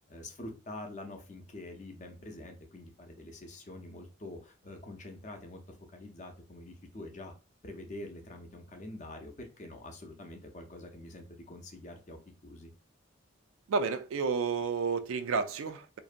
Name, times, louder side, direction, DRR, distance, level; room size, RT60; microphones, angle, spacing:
voice 1, 0.1-7.3 7.6-12.7, left 1 dB, 35° left, 0.5 m, -46 dB
voice 2, 13.7-16.0, right 5 dB, 90° right, 0.3 m, -31 dB
2.6 x 2.1 x 2.4 m
head